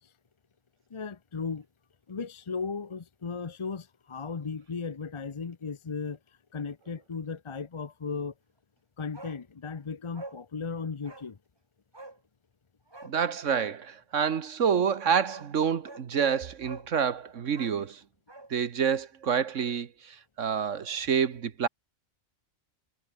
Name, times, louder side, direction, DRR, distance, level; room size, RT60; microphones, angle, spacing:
voice 1, 0.9-1.7 2.1-8.3 9.0-11.4, left 5 dB, 35° left, 0.5 m, -36 dB
Bark, 9.1-9.4 9.7-9.8 10.1-10.4 11.0-11.3 11.9-12.2 12.9-13.2 14.8-14.9 15.3-15.5 15.8-16.1 16.6-16.9 17.5-18.5 18.8-18.9, right 2 dB, 20° right, 1.8 m, -46 dB
voice 2, 13.0-18.0 18.5-21.7, right 7 dB, 65° right, 1.4 m, -28 dB
omnidirectional pair, 1.4 m